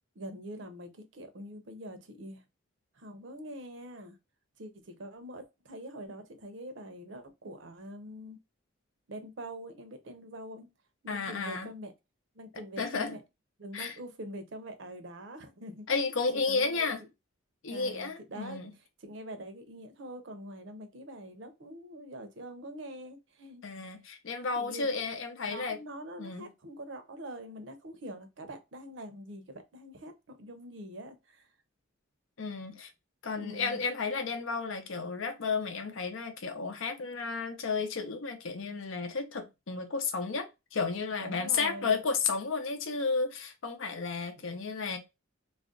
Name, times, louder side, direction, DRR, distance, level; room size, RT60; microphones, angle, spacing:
voice 1, 0.2-2.4 3.0-4.1 4.6-8.4 9.1-10.7 11.0-11.9 12.4-13.2 13.6-15.9 16.5-16.9 17.7-18.6 19.0-23.6 24.6-24.9 25.1-31.5 33.4-33.8 41.2-42.0, right 1 dB, 65° right, 0.6 m, -44 dB
voice 2, 11.1-11.7 12.8-13.2 13.7-13.9 15.9-17.0 17.6-18.7 23.6-25.8 26.2-26.5 32.4-32.9 33.2-45.0, left 4 dB, 75° left, 0.6 m, -32 dB
2.4 x 2.1 x 3.7 m
head